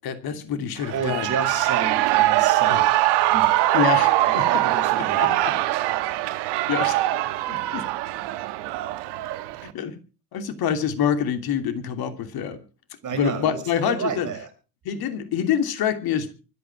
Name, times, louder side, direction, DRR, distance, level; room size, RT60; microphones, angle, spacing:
voice 1, 0.0-1.3 2.7-2.8 3.7-4.5 5.2-5.3 6.7-7.0 7.5-7.8 9.6-10.0 10.3-12.6 13.1-14.3 14.8-16.3, left 8 dB, 50° left, 8 dB, 2.9 m, -26 dB
Shout / Cheering, 0.8-9.7, right 16 dB, 60° right, 1.6 m, -22 dB
voice 2, 0.9-2.8 3.3-3.7 4.2-5.5 13.0-14.5, right 6 dB, 40° right, 6 dB, 7.0 m, -31 dB
25.0 x 8.7 x 4.7 m, 0.35 s
hypercardioid pair, 80°, 46 cm